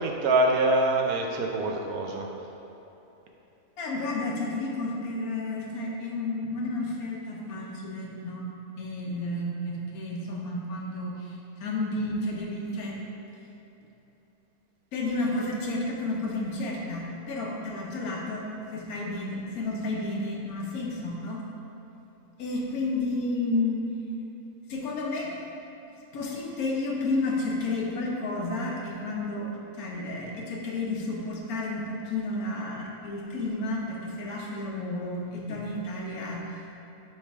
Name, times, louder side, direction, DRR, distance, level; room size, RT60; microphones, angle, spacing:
voice 1, 0.0-2.3, right 2 dB, 80° right, 1 dB, 1.1 m, -24 dB
voice 2, 3.8-8.5 8.8-13.0 14.9-21.4 22.4-23.9 24.7-25.3 26.1-36.6, left 2 dB, 75° left, -2 dB, 1.3 m, -31 dB
8.5 x 3.2 x 3.5 m, 3.0 s
omnidirectional pair, 1.6 m